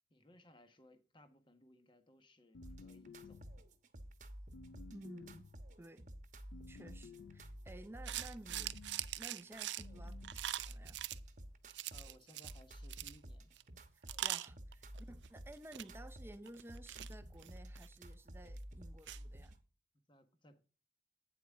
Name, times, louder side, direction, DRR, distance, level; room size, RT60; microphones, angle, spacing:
voice 1, 0.1-3.7 11.9-13.5 20.1-20.6, left 1 dB, 30° left, 1.3 m, -63 dB
sound 1, 2.5-3.7 4.5-5.6 6.5-7.6 8.5-9.1 9.8-10.4, left 4 dB, 75° left, 0.5 m, -55 dB
sound 2, 2.6-19.6, equal, 45° right, 1.1 m, -52 dB
voice 2, 4.9-5.5 5.8-6.1 6.7-8.8 9.2-11.0 13.9-19.6, right 1 dB, 15° right, 0.6 m, -54 dB
sound 3, 8.1-11.2 11.7-12.6 12.8-13.2 13.6-13.7 14.1-15.3 15.6-15.9 16.5-18.2 18.6-18.7 19.1-19.2, right 13 dB, 85° right, 0.5 m, -42 dB
9.1 x 7.2 x 3.6 m
head